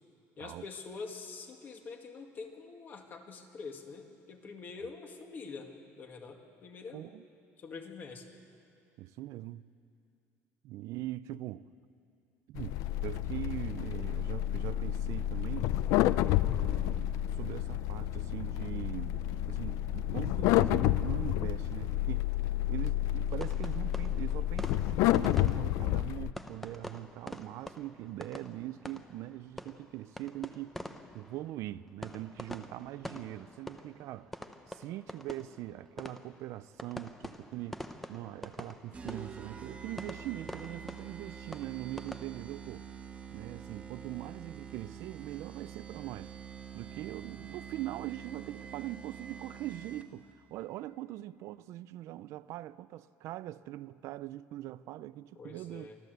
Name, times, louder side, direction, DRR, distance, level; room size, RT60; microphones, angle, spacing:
voice 1, 0.4-7.0 7.6-8.3 55.4-56.0, left 4 dB, 35° left, 2.0 m, -45 dB
voice 2, 6.9-7.2 9.0-9.6 10.6-11.7 12.5-15.7 16.4-22.3 22.7-30.8 31.1-37.8 38.1-42.9 43.3-46.3 46.7-55.9, right 15 dB, 65° right, 0.4 m, -42 dB
sound 1, 12.6-26.3, left 14 dB, 75° left, 0.4 m, -30 dB
sound 2, 23.4-42.2, left 1 dB, 5° left, 0.8 m, -46 dB
sound 3, 38.9-50.3, right 7 dB, 20° right, 1.3 m, -46 dB
24.5 x 14.0 x 8.0 m
cardioid pair, 145°, 6 cm